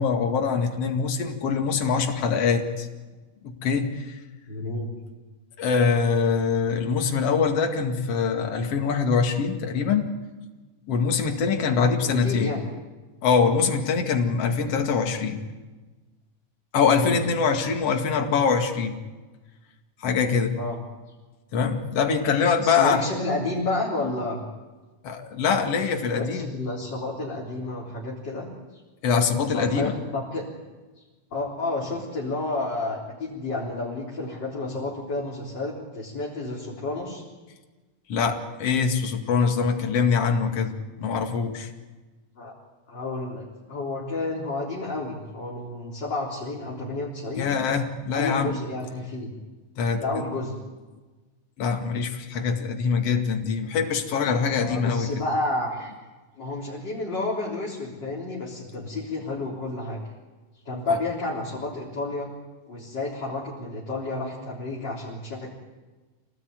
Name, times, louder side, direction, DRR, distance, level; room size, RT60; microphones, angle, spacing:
voice 1, 0.0-2.9 3.4-4.2 5.6-10.1 10.9-12.5 13.2-15.4 16.7-19.0 20.0-20.6 21.5-23.0 25.0-26.5 29.0-29.9 38.1-41.7 47.4-48.5 49.8-50.2 51.6-55.1 60.9-61.0, left 5 dB, 50° left, 4 dB, 2.9 m, -24 dB
voice 2, 4.5-4.9 12.0-12.6 17.0-17.2 20.6-20.8 22.6-24.4 26.1-28.5 29.5-30.4 31.0-31.1 31.3-37.2 42.4-42.5 42.9-47.5 48.1-49.3 50.0-50.5 54.6-55.9 56.4-60.0 60.6-62.3 62.7-65.5, left 2 dB, 30° left, -5 dB, 4.3 m, -30 dB
27.0 x 18.5 x 9.5 m, 1.3 s
omnidirectional pair, 3.8 m